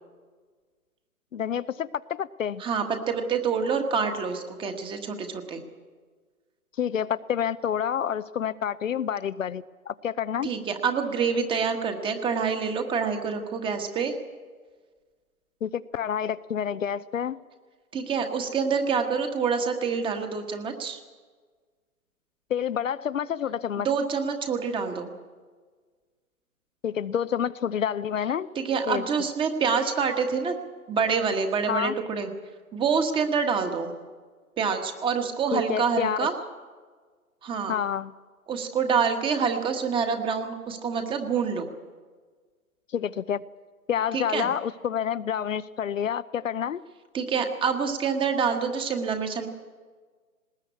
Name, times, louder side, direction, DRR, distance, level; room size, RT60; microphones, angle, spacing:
voice 1, 1.3-2.6 6.8-10.5 15.6-17.4 22.5-23.9 26.8-28.5 28.9-29.1 31.7-31.9 35.5-36.3 37.7-38.1 42.9-43.4 43.9-46.8, left 8 dB, 60° left, 13 dB, 0.7 m, -28 dB
voice 2, 2.6-5.6 10.4-14.1 17.9-21.0 23.8-25.1 28.5-30.5 30.9-32.3 32.7-33.9 34.6-36.3 37.4-37.7 38.5-41.7 44.1-44.5 47.1-49.5, right 6 dB, 10° right, 6 dB, 1.4 m, -26 dB
19.5 x 19.5 x 8.4 m, 1.5 s
figure-of-eight pair, 130°, 44 cm